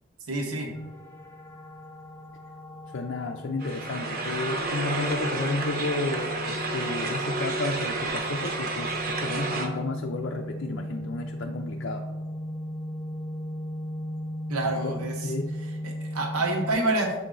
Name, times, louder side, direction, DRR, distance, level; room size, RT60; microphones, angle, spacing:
voice 1, 0.3-0.7 14.5-15.3 15.8-17.1, right 2 dB, 90° right, 1 dB, 0.9 m, -27 dB
sound 1, 0.7-16.7, equal, 10° left, 0.7 m, -37 dB
voice 2, 2.9-12.1 14.6-14.9 15.2-15.5, left 2 dB, 60° left, 2 dB, 0.4 m, -32 dB
sound 2, 3.6-9.7, right 3 dB, 45° right, 0.7 m, -31 dB
6.9 x 4.0 x 3.8 m, 1.2 s
head